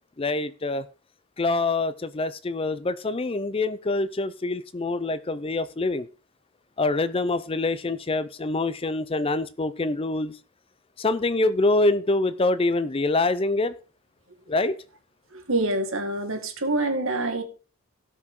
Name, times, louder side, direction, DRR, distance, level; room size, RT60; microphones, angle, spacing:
voice 1, 0.2-0.9 1.4-6.1 6.8-10.3 11.0-13.7 14.5-14.7, left 2 dB, 25° left, 0.5 m, -25 dB
voice 2, 15.5-17.4, right 2 dB, 65° right, 2.0 m, -26 dB
17.5 x 6.2 x 3.7 m
head